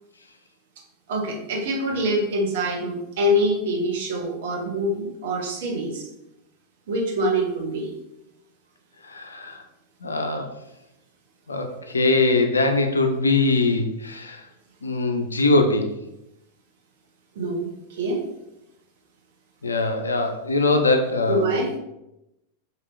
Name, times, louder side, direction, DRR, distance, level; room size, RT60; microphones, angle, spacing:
voice 1, 1.1-6.1 6.9-7.9 17.4-18.2 21.3-21.7, equal, 55° right, 0 dB, 0.7 m, -25 dB
voice 2, 9.1-9.6 10.0-10.5 11.5-14.4 14.8-15.9 19.6-21.6, left 2 dB, 75° left, 5 dB, 0.4 m, -22 dB
2.9 x 2.6 x 3.1 m, 0.90 s
figure-of-eight pair, 90°, 0 cm